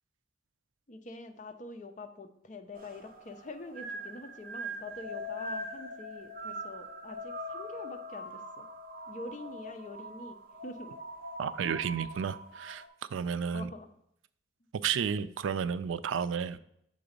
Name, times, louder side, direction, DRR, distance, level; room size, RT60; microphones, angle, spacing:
voice 1, 0.9-8.7 9.1-11.0 11.6-11.8 13.5-13.9, left 2 dB, 40° left, 7 dB, 0.6 m, -45 dB
sound 1, 2.7-12.9, equal, 45° right, 0.9 m, -42 dB
voice 2, 11.4-12.8 13.1-13.7 14.8-16.6, right 7 dB, 85° right, 15 dB, 0.4 m, -32 dB
6.8 x 4.0 x 5.1 m, 0.74 s
head